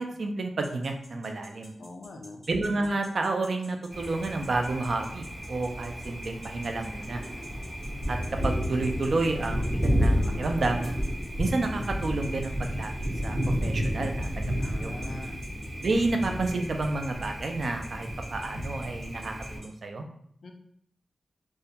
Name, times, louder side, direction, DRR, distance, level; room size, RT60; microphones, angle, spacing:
voice 1, 0.0-1.7 2.5-7.2 8.1-8.2 8.4-10.9 11.4-12.9 13.2-14.4 14.8-14.9 15.8-20.0, right 2 dB, 65° right, 4 dB, 0.3 m, -30 dB
sound 1, 0.6-19.7, equal, 80° right, 1.2 m, -50 dB
voice 2, 1.8-2.4 14.6-15.4 20.4-20.5, left 2 dB, 70° left, 3 dB, 0.3 m, -44 dB
Thunder, 3.9-19.6, equal, 45° right, 0.7 m, -31 dB
2.2 x 2.1 x 2.7 m, 0.68 s
wide cardioid pair, 95°, 0 cm